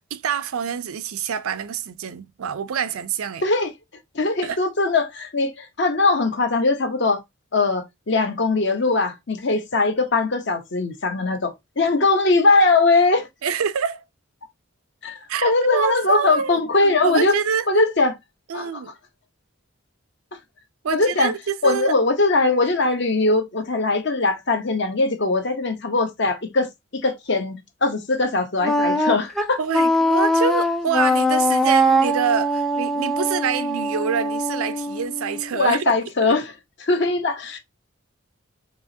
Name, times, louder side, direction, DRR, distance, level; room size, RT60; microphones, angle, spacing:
voice 1, 0.0-3.4 4.4-4.6 13.4-14.0 15.3-16.6 17.0-17.7 18.5-18.9 20.8-22.0 29.6-35.8 36.2-36.3, right 7 dB, 85° right, 0.4 m, -26 dB
voice 2, 4.1-7.2 7.5-13.3 15.0-17.4 17.7-18.2 18.5-18.8 20.9-21.3 21.6-26.7 26.9-29.6 35.5-36.5 36.8-37.6, left 3 dB, 55° left, 0.8 m, -21 dB
Wind instrument woodwind instrument, 28.6-35.6, equal, ahead, 0.4 m, -21 dB
4.7 x 2.9 x 2.7 m
head